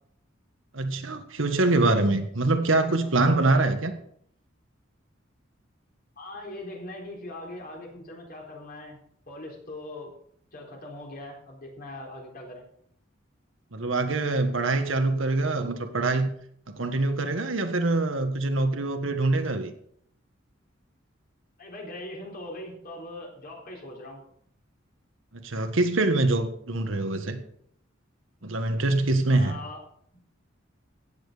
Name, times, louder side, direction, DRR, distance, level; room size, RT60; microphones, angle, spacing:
voice 1, 0.7-3.9 13.7-16.3 16.7-19.7 25.3-27.4 28.4-29.6, right 2 dB, 85° right, 6 dB, 1.6 m, -24 dB
voice 2, 6.2-9.0 9.3-10.1 10.5-12.6 21.6-24.2 29.3-29.8, left 1 dB, 50° left, 0 dB, 3.9 m, -41 dB
15.5 x 9.1 x 5.1 m, 0.67 s
head